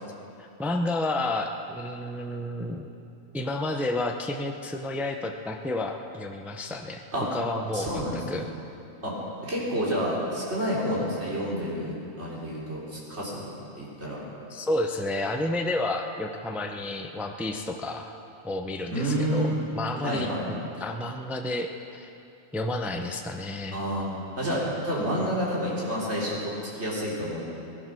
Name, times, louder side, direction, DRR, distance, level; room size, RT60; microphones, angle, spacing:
voice 1, 0.4-2.9 3.3-7.0 7.3-8.5 14.5-18.2 18.4-22.1 22.5-23.8, left 2 dB, ahead, 3 dB, 0.6 m, -31 dB
voice 2, 7.7-8.5 9.0-9.2 9.4-13.5 13.7-14.2 18.9-19.6 20.0-20.5 23.7-24.1 24.4-27.4, equal, 55° right, -7 dB, 4.2 m, -29 dB
20.0 x 11.5 x 6.3 m, 2.7 s
omnidirectional pair, 1.4 m